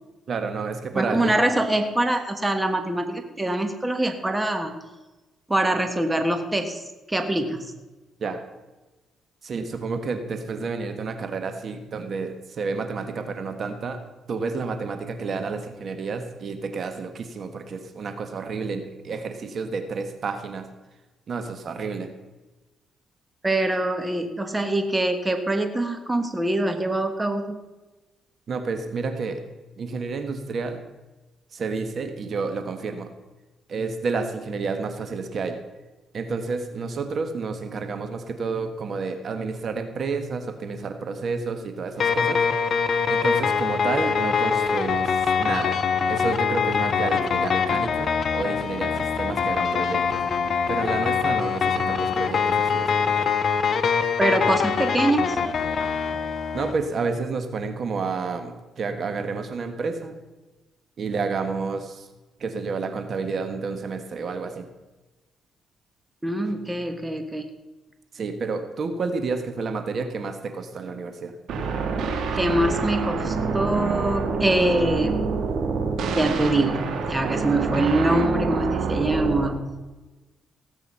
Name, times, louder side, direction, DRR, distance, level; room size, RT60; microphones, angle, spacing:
voice 1, 0.3-1.4 8.2-8.4 9.4-14.0 14.3-20.6 21.3-22.1 28.5-29.4 29.8-30.8 31.5-33.1 33.7-35.6 36.1-42.4 43.1-45.1 45.4-45.8 46.1-50.2 50.7-53.3 56.5-60.1 61.0-62.0 62.4-64.6 68.1-71.3, right 4 dB, 50° right, 7 dB, 1.5 m, -30 dB
voice 2, 0.9-4.7 5.5-7.7 23.4-27.6 54.2-55.4 66.2-67.4 72.3-75.2 76.1-79.7, right 1 dB, 15° right, 7 dB, 1.5 m, -24 dB
sound 1, 42.0-56.7, left 6 dB, 55° left, 1.0 m, -23 dB
sound 2, 71.5-79.5, right 4 dB, 70° right, 2.3 m, -26 dB
17.5 x 8.1 x 5.6 m, 1.1 s
cardioid pair, 90°, 0 cm